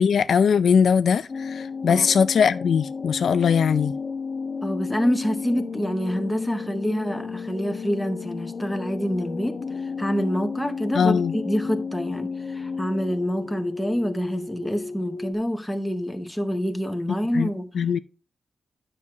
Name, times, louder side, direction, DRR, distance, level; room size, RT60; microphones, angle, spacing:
voice 1, 0.0-3.9 10.9-11.3 17.3-17.5 17.7-18.0, left 6 dB, 65° left, 0.4 m, -20 dB
sound 1, 1.3-15.3, left 5 dB, 45° left, 0.8 m, -33 dB
voice 2, 4.6-17.7, equal, 5° left, 0.7 m, -27 dB
9.8 x 5.9 x 2.9 m
wide cardioid pair, 165°, 0 cm